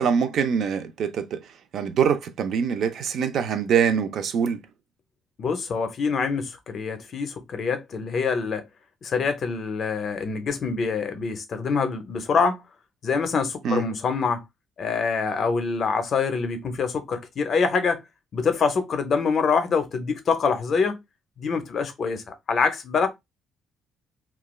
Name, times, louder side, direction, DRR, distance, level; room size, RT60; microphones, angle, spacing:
voice 1, 0.0-1.4 1.7-4.6 13.6-13.8, right 7 dB, 50° right, 0.4 m, -24 dB
voice 2, 5.4-8.6 9.0-12.6 13.0-14.4 14.8-18.0 18.3-21.0 21.4-23.1, left 5 dB, 40° left, 0.5 m, -25 dB
3.0 x 2.3 x 2.2 m
cardioid pair, 170°, 0 cm